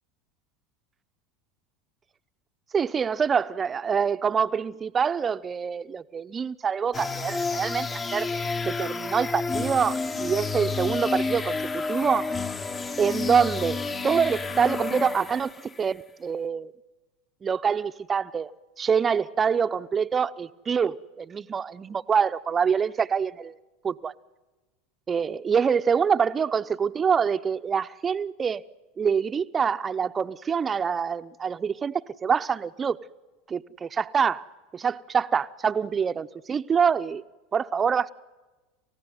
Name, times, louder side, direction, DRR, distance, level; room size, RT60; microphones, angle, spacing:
voice 1, 2.7-8.3 8.6-12.3 13.0-16.7 17.4-18.5 18.8-23.5 23.8-24.1 25.1-28.6 29.0-33.0 33.5-34.4 34.7-37.2 37.5-38.1, right 6 dB, 25° right, 0.7 m, -25 dB
sound 1, 6.9-15.8, left 4 dB, 25° left, 1.1 m, -30 dB
29.0 x 15.5 x 9.4 m
hypercardioid pair, 90°, 0 cm